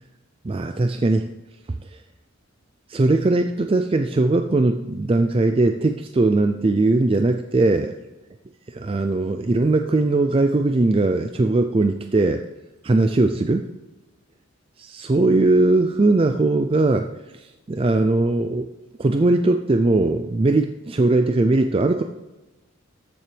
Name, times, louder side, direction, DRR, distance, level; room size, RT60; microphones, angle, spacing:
voice 1, 0.4-1.3 1.9-2.0 2.9-8.0 8.7-12.4 12.8-13.7 14.8-17.1 17.3-18.7 19.0-22.0, right 2 dB, 25° right, 7 dB, 0.4 m, -20 dB
13.5 x 7.1 x 3.4 m, 1.1 s
head